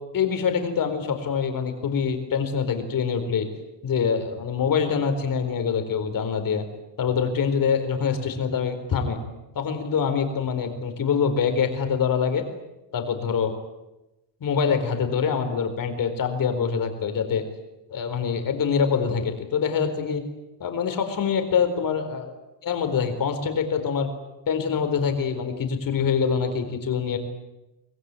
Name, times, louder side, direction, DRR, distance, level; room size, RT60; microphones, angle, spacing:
voice 1, 0.1-3.5 3.8-6.6 7.0-9.2 9.5-12.4 12.9-13.5 14.4-17.4 17.9-20.2 20.6-22.3 22.6-24.1 24.5-27.2, left 6 dB, 50° left, 7 dB, 4.4 m, -25 dB
25.5 x 20.5 x 9.8 m, 0.97 s
cardioid pair, 170°, 44 cm